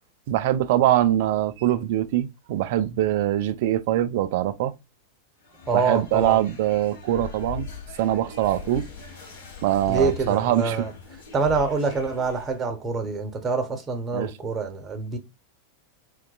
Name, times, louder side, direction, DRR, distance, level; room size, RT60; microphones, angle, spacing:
voice 1, 0.3-4.7 5.7-7.7 8.0-8.8 9.6-10.8 14.1-14.3, right 13 dB, 50° right, 0.3 m, -23 dB
sound 1, 5.4-12.6, left 6 dB, 50° left, 1.0 m, -39 dB
voice 2, 5.7-6.4 9.9-10.9 11.3-15.2, right 4 dB, 20° right, 0.7 m, -26 dB
3.8 x 2.1 x 2.3 m
figure-of-eight pair, 90°, 0 cm